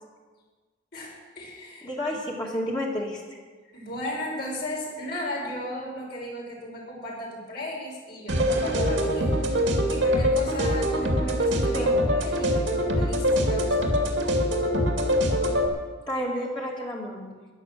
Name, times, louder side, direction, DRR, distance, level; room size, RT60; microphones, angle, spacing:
voice 1, 0.9-1.9 3.7-14.3, left 1 dB, 55° left, -3 dB, 5.5 m, -36 dB
voice 2, 1.8-3.2 11.7-12.0 16.1-17.4, left 1 dB, 25° left, -3 dB, 2.3 m, -30 dB
sound 1, 8.3-15.7, equal, 80° right, 2.3 m, -23 dB
12.5 x 11.0 x 7.5 m, 1.4 s
head